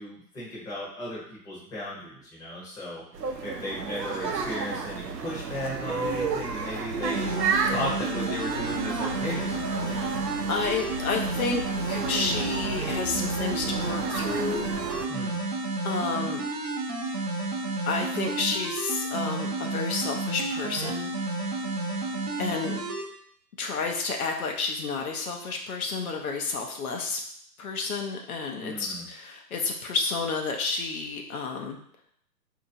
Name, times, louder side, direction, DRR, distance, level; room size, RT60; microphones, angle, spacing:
voice 1, 0.0-7.3 7.7-10.1 15.1-15.4 28.5-29.1, left 1 dB, 5° left, -7 dB, 0.8 m, -36 dB
sound 1, 3.1-15.1, right 5 dB, 80° right, 0.7 m, -32 dB
sound 2, 7.0-23.0, right 2 dB, 25° right, 0.6 m, -31 dB
voice 2, 10.5-11.6 11.9-14.7 15.8-16.5 17.8-21.1 22.4-22.8 23.6-27.2 27.6-31.8, left 4 dB, 60° left, 2 dB, 0.7 m, -30 dB
4.5 x 2.8 x 2.6 m, 0.66 s
hypercardioid pair, 130°, 49 cm